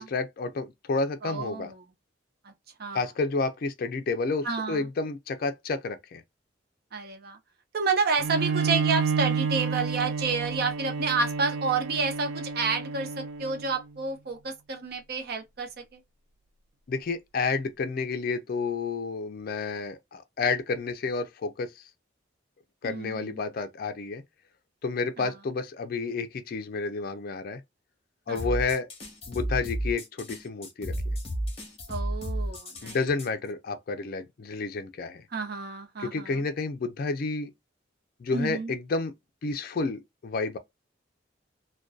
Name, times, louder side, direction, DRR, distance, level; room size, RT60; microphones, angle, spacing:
voice 1, 0.0-1.7 2.9-6.2 16.9-21.7 22.8-24.2 24.8-27.6 28.3-28.9 29.3-30.9 32.8-35.2 36.0-37.5 38.2-39.1 39.4-40.6, left 4 dB, 50° left, 0.4 m, -30 dB
voice 2, 1.2-1.9 2.4-2.5 2.8-3.0 4.4-4.9 6.9-7.4 7.7-16.0 22.8-23.3 25.2-25.3 28.3-28.4 31.9-33.0 35.3-36.4 38.3-38.7, right 4 dB, 55° right, 0.6 m, -30 dB
Bowed string instrument, 8.2-13.8, right 5 dB, 90° right, 0.3 m, -30 dB
sound 1, 28.4-33.3, equal, 35° left, 0.9 m, -32 dB
2.5 x 2.2 x 2.2 m
head